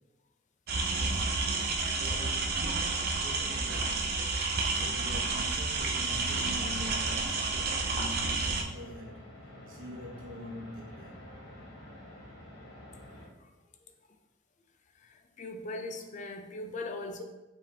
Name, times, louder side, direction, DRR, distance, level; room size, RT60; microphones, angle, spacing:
sound 1, 0.7-8.6, right 3 dB, 50° right, 0.5 m, -30 dB
voice 1, 0.9-1.5 1.9-2.7 3.2-4.3 4.6-11.2, left 1 dB, 90° right, -2 dB, 0.9 m, -45 dB
sound 2, 6.0-13.3, left 1 dB, 65° left, 1.0 m, -49 dB
voice 2, 15.0-17.2, left 2 dB, 35° left, 5 dB, 0.4 m, -39 dB
4.8 x 3.5 x 2.7 m, 1.2 s
head